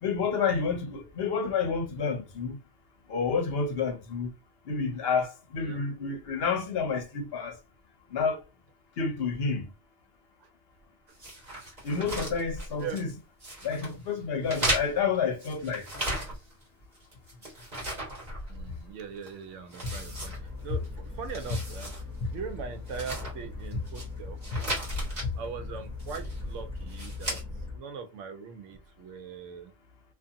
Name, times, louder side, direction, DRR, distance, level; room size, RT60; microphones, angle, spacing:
voice 1, 0.0-2.6 3.1-4.3 4.7-7.6 8.1-8.4 9.0-9.7 11.8-13.1 13.6-15.9 24.5-24.6, left 5 dB, 60° left, 0.8 m, -29 dB
sound 1, 11.2-13.1 13.4-13.9 14.4-16.6 16.9-18.9 19.2-19.3 19.7-20.9 21.2-22.0 22.3-22.4 22.9-24.0 24.4-25.3 26.0-26.4 26.9-27.4, right 1 dB, 40° right, 1.3 m, -35 dB
voice 2, 18.5-20.3 20.6-20.8 21.2-21.9 22.3-24.4 25.4-27.4 27.7-29.7, right 6 dB, 85° right, 0.9 m, -40 dB
sound 2, 19.8-27.8, left 3 dB, 15° left, 0.9 m, -40 dB
2.6 x 2.4 x 2.5 m
omnidirectional pair, 1.2 m